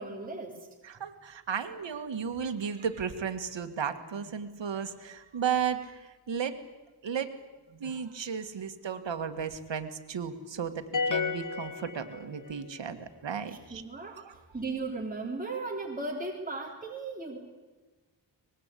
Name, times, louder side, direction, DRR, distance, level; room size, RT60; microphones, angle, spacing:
voice 1, 0.0-0.7 13.7-14.2 14.5-17.4, right 3 dB, 20° right, -1 dB, 3.4 m, -36 dB
voice 2, 0.8-6.6 7.0-7.3 7.7-14.3, right 7 dB, 75° right, 8 dB, 1.9 m, -34 dB
sound 1, 10.9-12.7, left 5 dB, 45° left, 1.2 m, -32 dB
24.0 x 20.5 x 8.4 m, 1.2 s
wide cardioid pair, 90°, 44 cm